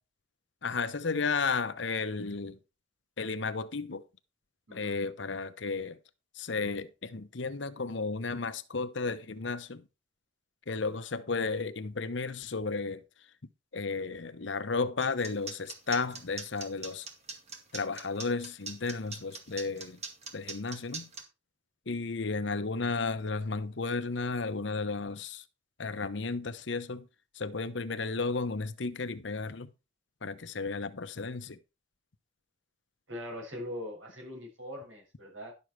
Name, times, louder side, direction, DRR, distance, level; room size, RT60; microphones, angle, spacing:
voice 1, 0.6-2.6 3.2-4.0 4.7-6.0 6.3-9.8 10.7-13.0 13.7-17.1 17.7-20.0 20.3-21.1 21.9-25.4 25.8-27.1 27.3-29.7 30.2-31.6, left 4 dB, 70° left, 0.9 m, -33 dB
sound 1, 15.0-21.2, right 4 dB, 35° right, 2.2 m, -41 dB
voice 2, 33.1-35.5, left 1 dB, 80° right, 6.6 m, -41 dB
11.5 x 7.1 x 4.6 m
head